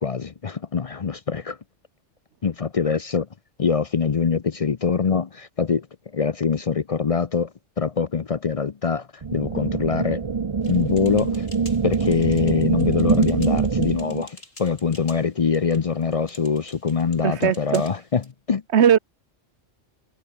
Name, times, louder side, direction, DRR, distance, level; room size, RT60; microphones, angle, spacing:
voice 1, 0.0-1.6 2.4-3.3 3.6-5.9 6.1-7.5 7.8-10.2 10.7-11.5 11.8-18.2 18.5-18.6, left 5 dB, 40° left, 0.5 m, -23 dB
sound 1, 9.2-14.2, right 5 dB, 35° right, 0.5 m, -24 dB
sound 2, 10.6-18.3, left 1 dB, 90° left, 8.4 m, -48 dB
voice 2, 17.2-17.8 18.7-19.0, right 8 dB, 60° right, 1.2 m, -18 dB
omnidirectional pair, 1.3 m